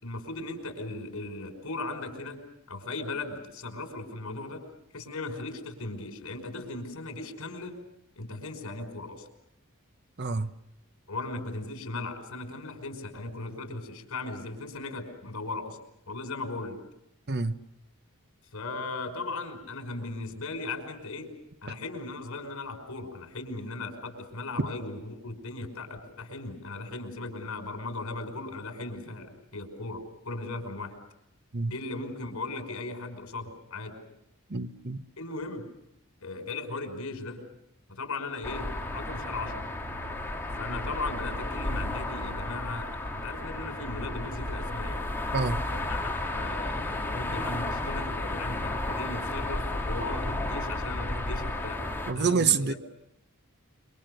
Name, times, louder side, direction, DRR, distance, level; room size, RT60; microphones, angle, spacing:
voice 1, 0.0-2.4 2.7-4.6 4.9-7.7 8.2-9.3 11.1-15.8 16.1-16.8 18.5-21.3 21.6-31.0 31.6-33.9 35.2-35.6 36.2-37.5 37.9-39.6 40.6-45.1 45.6-51.8 52.1-52.8, left 3 dB, 75° left, 5.3 m, -37 dB
voice 2, 10.2-10.5 17.3-17.6 31.5-31.7 34.5-35.0 45.3-45.6 52.1-52.7, right 5 dB, 50° right, 1.0 m, -27 dB
sound 1, 38.4-52.1, left 1 dB, 10° left, 2.7 m, -33 dB
27.5 x 25.0 x 6.6 m
head